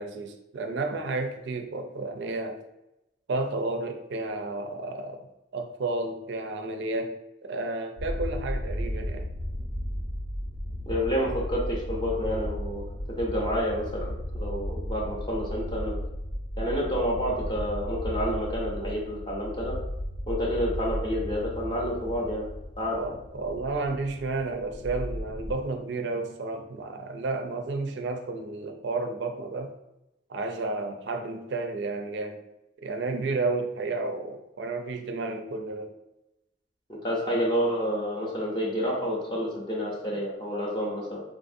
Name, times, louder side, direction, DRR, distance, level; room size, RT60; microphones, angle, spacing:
voice 1, 0.0-2.6 3.3-5.3 5.5-9.3 22.9-29.7 30.3-32.4 32.8-35.9, right 3 dB, 65° right, 5 dB, 0.4 m, -32 dB
sound 1, 8.0-25.5, equal, 65° left, 0.8 m, -34 dB
voice 2, 10.9-12.8 13.2-16.0 16.6-19.8 20.3-22.5 22.8-23.0 37.0-41.2, equal, 25° left, -4 dB, 0.6 m, -29 dB
3.5 x 2.5 x 2.5 m, 0.92 s
head